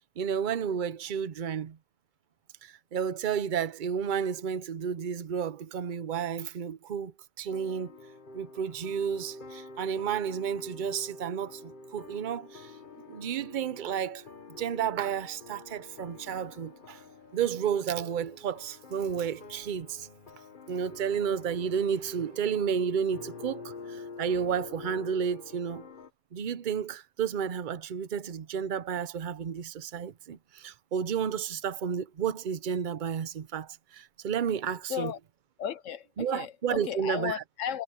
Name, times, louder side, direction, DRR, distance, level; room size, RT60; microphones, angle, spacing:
voice 1, 0.0-1.8 2.6-7.1 7.4-7.9 8.3-12.7 13.0-14.2 14.6-17.0 17.3-20.1 20.7-25.8 26.3-35.1 36.2-37.3, right 7 dB, 45° right, 0.8 m, -32 dB
sound 1, 7.5-26.1, left 3 dB, 40° left, 1.3 m, -47 dB
voice 2, 34.9-35.2 35.6-37.8, left 9 dB, 70° left, 1.3 m, -35 dB
omnidirectional pair, 1.4 m